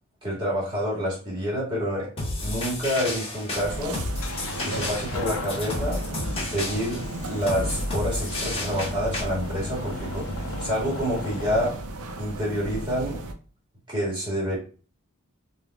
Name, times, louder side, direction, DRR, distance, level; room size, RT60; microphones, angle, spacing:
voice 1, 0.2-2.1 2.4-4.3 4.6-6.2 6.5-11.8 12.2-13.2 13.9-14.6, equal, 20° right, -5 dB, 2.0 m, -28 dB
sound 1, 2.2-9.2, left 2 dB, 25° left, 1.3 m, -32 dB
sound 2, 2.5-11.7, left 3 dB, 65° left, 0.6 m, -38 dB
sound 3, 3.6-13.3, right 2 dB, 90° right, 0.6 m, -35 dB
5.1 x 2.6 x 2.3 m, 0.38 s
head